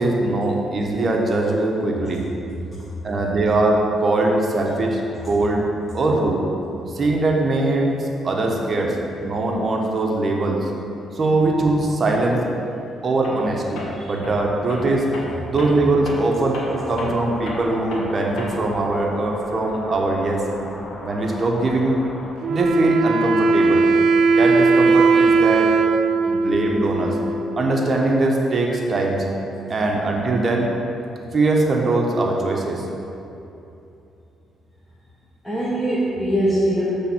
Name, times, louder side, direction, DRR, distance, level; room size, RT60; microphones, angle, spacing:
voice 1, 0.0-2.3 3.0-5.7 5.9-6.5 6.9-10.7 11.1-12.4 13.0-15.1 15.5-20.4 21.0-22.0 22.5-23.8 24.3-25.7 26.3-27.2 27.6-29.2 29.7-30.7 31.3-32.8, right 2 dB, 40° right, 0 dB, 0.9 m, -21 dB
Tools, 13.2-13.5 13.8-18.8, left 1 dB, 70° left, 1.2 m, -33 dB
sound 1, 16.6-22.3, left 1 dB, 45° left, 0.8 m, -37 dB
Wind instrument woodwind instrument, 22.4-27.9, right 4 dB, 70° right, 0.3 m, -18 dB
voice 2, 26.1-26.5 35.4-36.9, right 1 dB, 10° left, -9 dB, 1.2 m, -24 dB
5.9 x 3.4 x 5.8 m, 2.8 s
cardioid pair, 90°, 0 cm